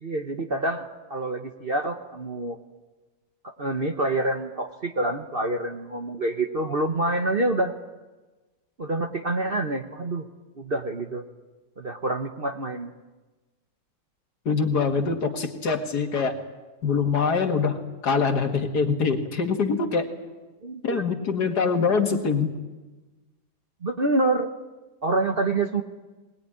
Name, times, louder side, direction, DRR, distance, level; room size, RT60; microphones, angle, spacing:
voice 1, 0.0-2.6 3.4-7.7 8.8-10.3 10.6-11.2 11.8-12.9 20.6-21.0 23.8-24.5 25.0-25.8, right 2 dB, 35° right, 5 dB, 1.2 m, -27 dB
voice 2, 14.5-16.4 16.8-17.8 18.0-20.1 20.8-22.5, left 5 dB, 65° left, 5 dB, 2.5 m, -24 dB
22.0 x 20.0 x 10.0 m, 1.2 s
omnidirectional pair, 1.9 m